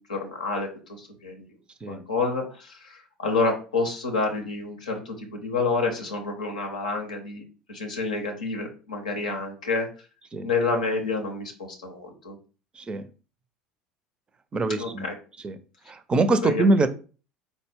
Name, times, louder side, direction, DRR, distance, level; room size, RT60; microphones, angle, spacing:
voice 1, 0.0-1.5 1.9-9.9 10.4-12.4 14.7-15.2 16.4-16.7, left 3 dB, 85° left, 2 dB, 0.6 m, -29 dB
voice 2, 14.5-15.1 15.4-15.6 15.9-16.9, right 2 dB, 25° right, 11 dB, 0.4 m, -23 dB
4.0 x 2.1 x 3.4 m, 0.36 s
hypercardioid pair, 70°, 4 cm